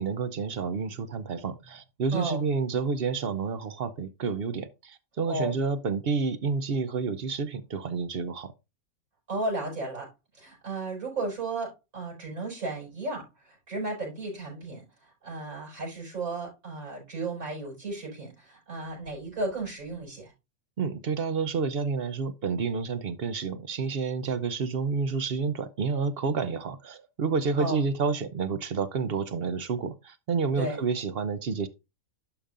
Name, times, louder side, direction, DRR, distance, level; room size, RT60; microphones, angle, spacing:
voice 1, 0.0-8.5 20.8-31.7, right 5 dB, 55° right, 0.8 m, -29 dB
voice 2, 2.1-2.4 5.3-5.6 9.3-10.1 10.3-20.3 27.6-27.8 30.6-30.8, right 2 dB, 70° right, 5.9 m, -34 dB
12.0 x 5.1 x 2.5 m
omnidirectional pair, 1.5 m